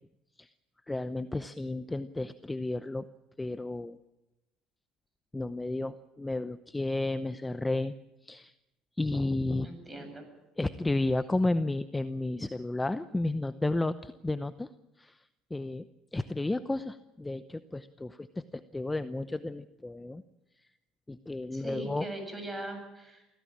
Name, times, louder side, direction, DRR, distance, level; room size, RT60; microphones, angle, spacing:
voice 1, 0.9-3.1 3.4-4.0 5.3-7.9 8.2-8.5 9.0-9.7 10.6-14.7 15.0-15.2 15.5-20.2 21.1-22.1, left 2 dB, 10° left, 12 dB, 0.8 m, -32 dB
voice 2, 9.6-10.2 21.5-23.2, right 1 dB, 15° right, 6 dB, 7.9 m, -40 dB
24.5 x 16.5 x 8.7 m, 0.95 s
supercardioid pair, 100°, 0 cm